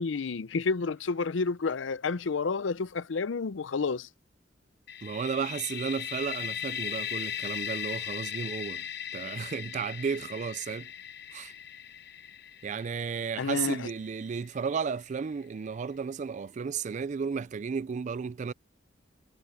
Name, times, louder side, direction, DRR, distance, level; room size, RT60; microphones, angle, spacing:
voice 1, 0.0-4.1 13.4-13.8, left 4 dB, 75° left, 0.5 m, -30 dB
sound 1, 4.9-14.6, left 9 dB, 60° left, 0.9 m, -38 dB
voice 2, 5.0-8.9 9.1-10.9 11.3-11.5 12.6-18.5, right 6 dB, 40° right, 0.3 m, -33 dB
head